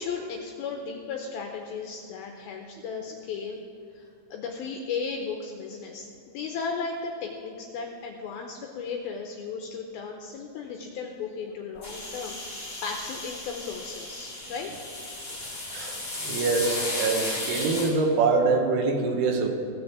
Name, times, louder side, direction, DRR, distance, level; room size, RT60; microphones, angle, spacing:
voice 1, 0.0-3.6 3.9-4.1 4.3-14.7, left 5 dB, 85° left, 2 dB, 2.2 m, -35 dB
sound 1, 11.8-17.9, left 2 dB, 15° left, 2.6 m, -34 dB
voice 2, 16.2-19.5, right 4 dB, 75° right, 3 dB, 3.1 m, -24 dB
16.5 x 6.2 x 7.3 m, 2.4 s
omnidirectional pair, 5.1 m